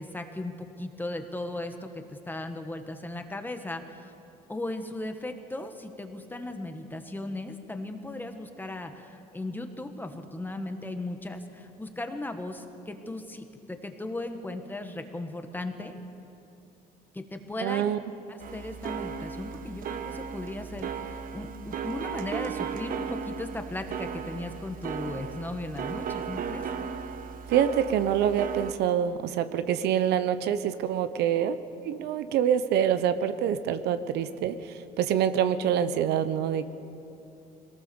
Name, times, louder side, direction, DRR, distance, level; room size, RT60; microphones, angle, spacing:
voice 1, 0.0-4.1 4.5-15.9 17.1-17.9 18.3-26.7, left 2 dB, 10° left, 6 dB, 1.7 m, -37 dB
voice 2, 17.6-18.0 27.5-31.6 31.8-36.7, right 9 dB, 80° right, 11 dB, 0.9 m, -26 dB
sound 1, 18.4-28.7, right 7 dB, 55° right, 1.2 m, -36 dB
22.0 x 18.5 x 7.1 m, 2.7 s
cardioid pair, 110°, 17 cm